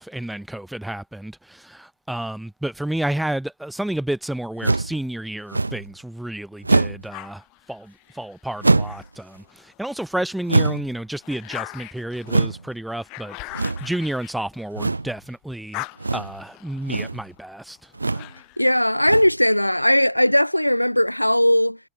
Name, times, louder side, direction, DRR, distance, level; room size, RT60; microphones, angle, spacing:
voice 1, 0.0-15.9 16.1-17.8, right 1 dB, 5° right, 2.0 m, -31 dB
sound 1, 4.6-5.0 5.5-5.9 6.6-7.1 8.6-9.1 10.5-11.0 12.3-12.6 13.5-14.0 14.8-15.1 16.0-16.4 16.8-17.2 17.9-18.3 19.0-19.4, right 3 dB, 80° right, 0.3 m, -22 dB
sound 2, 7.1-9.8 10.3-15.1 15.4-18.7, left 25 dB, 40° left, 4.3 m, -41 dB
voice 2, 18.6-21.8, equal, 90° left, 0.3 m, -18 dB
figure-of-eight pair, 90°, 0 cm